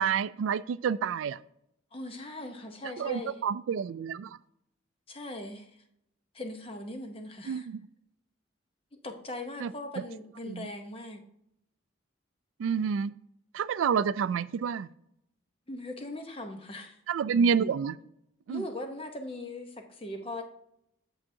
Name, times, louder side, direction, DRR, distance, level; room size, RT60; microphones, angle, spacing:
voice 1, 0.0-1.4 3.0-4.4 7.4-7.8 9.6-9.7 10.5-10.7 12.6-13.1 13.5-14.9 17.1-18.0 18.5-18.6, right 6 dB, 85° right, 17 dB, 0.3 m, -28 dB
voice 2, 1.9-3.5 5.1-5.7 6.3-7.7 9.0-11.2 15.7-17.0 18.5-20.4, left 1 dB, 30° left, 5 dB, 0.9 m, -40 dB
7.8 x 7.3 x 2.7 m, 0.76 s
head